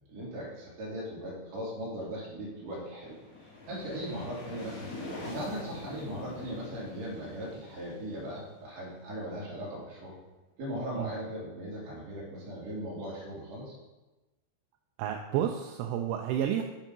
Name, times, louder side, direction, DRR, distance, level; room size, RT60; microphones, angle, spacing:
voice 1, 0.1-3.2 3.7-10.1 10.6-13.8, equal, 40° right, -6 dB, 2.9 m, -38 dB
sound 1, 2.7-9.4, left 2 dB, 40° left, 3.0 m, -45 dB
voice 2, 15.0-16.6, right 10 dB, 85° right, 3 dB, 2.7 m, -30 dB
8.3 x 5.4 x 5.3 m, 1.1 s
omnidirectional pair, 5.6 m